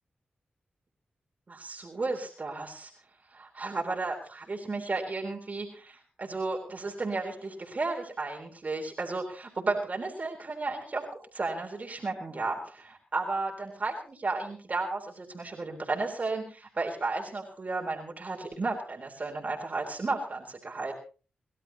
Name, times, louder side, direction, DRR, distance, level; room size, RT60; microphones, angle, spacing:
voice 1, 1.5-2.9 3.3-11.1 11.3-20.9, right 3 dB, 45° right, 1 dB, 3.8 m, -33 dB
30.0 x 12.5 x 2.9 m, 0.36 s
supercardioid pair, 40°, 4 cm